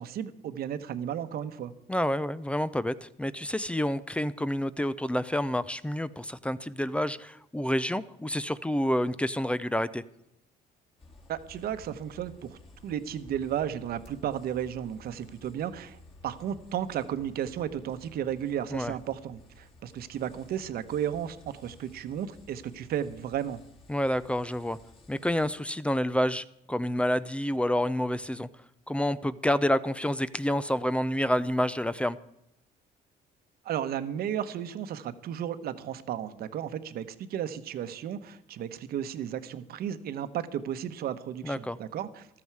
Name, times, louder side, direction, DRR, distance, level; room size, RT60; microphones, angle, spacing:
voice 1, 0.0-1.7 11.3-23.6 33.6-42.3, right 10 dB, 65° right, 11 dB, 1.1 m, -34 dB
voice 2, 1.9-10.0 18.7-18.9 23.9-24.8 25.1-28.5 28.9-32.2 41.4-41.8, equal, 5° left, 16 dB, 0.5 m, -28 dB
sound 1, 11.0-25.5, left 2 dB, 35° left, 3.2 m, -54 dB
15.0 x 13.0 x 4.8 m, 0.81 s
cardioid pair, 110°, 17 cm